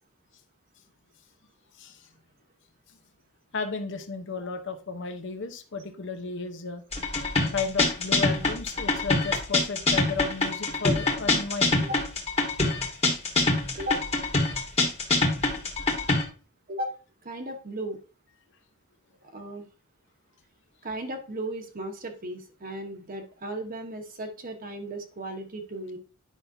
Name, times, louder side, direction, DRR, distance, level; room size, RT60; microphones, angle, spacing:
voice 1, 3.5-6.8 7.5-11.9 14.4-14.5, left 5 dB, 55° left, 6 dB, 0.8 m, -33 dB
sound 1, 6.9-16.2, left 2 dB, 30° left, 1.7 m, -24 dB
voice 2, 17.2-18.0 19.2-19.6 20.8-26.0, right 1 dB, 40° right, 5 dB, 1.0 m, -35 dB
10.0 x 5.6 x 2.7 m, 0.36 s
head